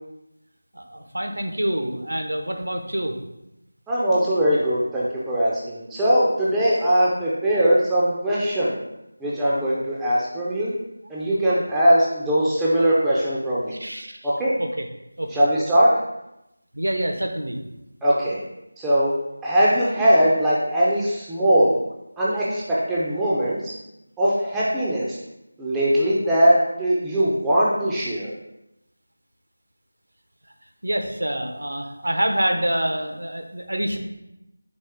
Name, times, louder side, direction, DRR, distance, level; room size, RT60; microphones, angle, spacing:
voice 1, 0.7-3.1 13.7-14.3 14.6-14.9 15.2-15.3 16.7-17.6 30.8-34.0, right 1 dB, 80° right, 4 dB, 0.7 m, -26 dB
voice 2, 3.9-8.8 9.2-10.7 11.1-13.7 14.2-14.5 15.3-15.9 18.0-18.4 18.8-19.1 19.4-21.7 22.2-23.7 24.2-25.2 25.6-28.3, equal, 5° right, -8 dB, 0.4 m, -20 dB
4.3 x 2.9 x 3.4 m, 0.89 s
figure-of-eight pair, 170°, 0 cm